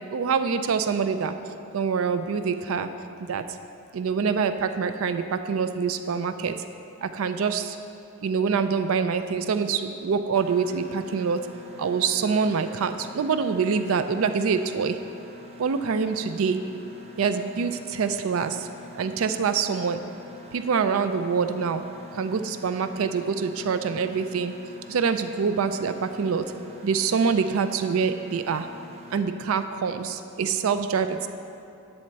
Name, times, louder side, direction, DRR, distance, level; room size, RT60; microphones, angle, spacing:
voice 1, 0.1-1.3 1.7-2.9 3.3-3.4 3.9-6.6 7.0-7.8 8.2-11.4 11.8-15.0 15.6-16.6 17.2-18.7 18.9-20.0 20.5-21.8 22.1-24.5 24.9-26.5 26.8-28.7 29.1-31.3, right 5 dB, 75° right, 10 dB, 0.4 m, -25 dB
Mechanisms, 10.3-29.2, left 2 dB, 30° right, 0.9 m, -46 dB
10.5 x 4.3 x 7.8 m, 2.7 s
head